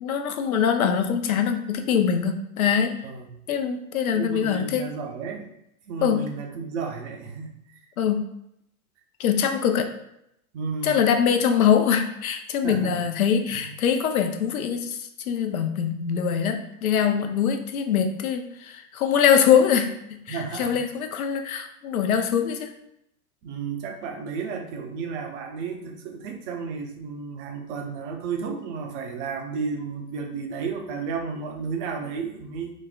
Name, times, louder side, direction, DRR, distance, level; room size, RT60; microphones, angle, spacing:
voice 1, 0.0-2.9 3.5-4.9 6.0-6.2 8.0-8.2 9.2-9.9 10.8-15.0 15.3-19.9 20.3-22.7, left 8 dB, 80° left, 6 dB, 0.5 m, -23 dB
voice 2, 3.0-3.4 4.1-5.5 5.9-7.5 10.5-11.1 12.6-13.0 13.5-13.6 20.3-20.8 23.4-32.7, right 5 dB, 55° right, 3 dB, 0.7 m, -32 dB
4.1 x 2.1 x 2.3 m, 0.78 s
figure-of-eight pair, 85°, 43 cm